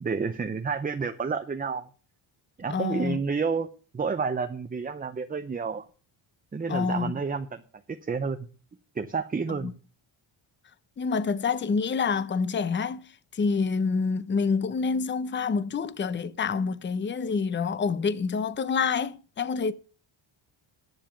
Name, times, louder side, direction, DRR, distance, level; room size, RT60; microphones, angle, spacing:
voice 1, 0.0-1.9 2.6-3.7 3.9-5.9 6.5-7.6 7.9-8.5 9.0-9.7, right 5 dB, 20° right, 0.6 m, -30 dB
voice 2, 2.7-3.2 6.7-7.2 9.6-9.7 11.0-19.7, left 5 dB, 25° left, 0.6 m, -27 dB
10.5 x 7.0 x 6.9 m
cardioid pair, 130°, 49 cm